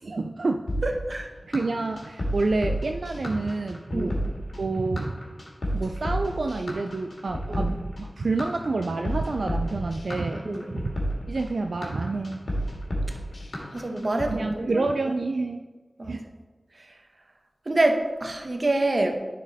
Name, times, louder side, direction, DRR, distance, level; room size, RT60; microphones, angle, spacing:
voice 1, 0.0-0.7 1.5-4.2 4.6-5.1 5.7-10.4 10.7-10.9 11.3-12.4 14.3-15.6 16.1-16.3, right 3 dB, 75° right, 4 dB, 0.3 m, -28 dB
sound 1, 0.7-14.3, equal, 80° left, 1.8 m, -31 dB
voice 2, 0.8-1.3 3.9-4.1 7.5-7.7 10.4-10.6 13.7-14.9 16.0-16.1 17.7-19.2, right 2 dB, 45° right, 5 dB, 0.8 m, -26 dB
9.9 x 4.2 x 4.1 m, 1.3 s
wide cardioid pair, 80°, 0 cm